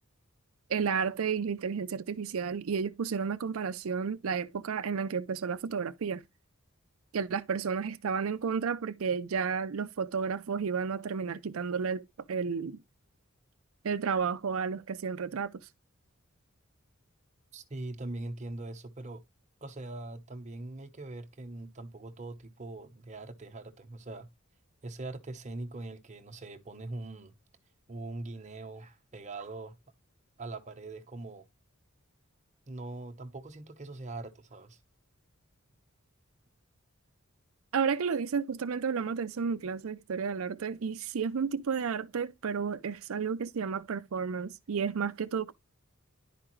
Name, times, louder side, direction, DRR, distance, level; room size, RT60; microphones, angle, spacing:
voice 1, 0.7-6.2 7.1-12.0 12.3-12.8 13.8-15.5 37.7-45.5, right 6 dB, 80° right, 0.5 m, -32 dB
voice 2, 17.5-19.2 19.6-24.3 24.8-27.3 27.9-29.7 30.4-31.5 32.7-34.8, right 2 dB, 35° right, 1.0 m, -42 dB
11.0 x 4.9 x 3.1 m
head